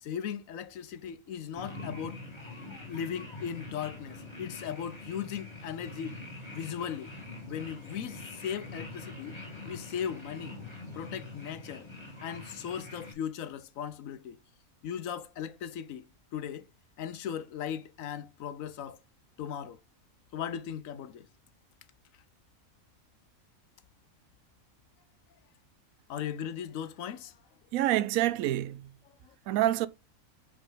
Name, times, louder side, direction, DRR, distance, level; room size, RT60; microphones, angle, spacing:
voice 1, 0.0-2.2 2.9-6.1 6.5-7.1 7.5-9.4 9.6-10.6 10.9-11.9 12.2-14.4 14.8-16.0 16.3-16.7 17.0-19.0 19.4-19.8 20.3-21.3 26.1-27.3 29.2-29.3, left 8 dB, 75° left, 1.1 m, -37 dB
sound 1, 1.5-13.1, left 2 dB, 20° left, 2.5 m, -44 dB
voice 2, 27.7-28.9 29.5-29.9, right 13 dB, 80° right, 1.0 m, -27 dB
5.6 x 4.8 x 3.7 m
omnidirectional pair, 1.5 m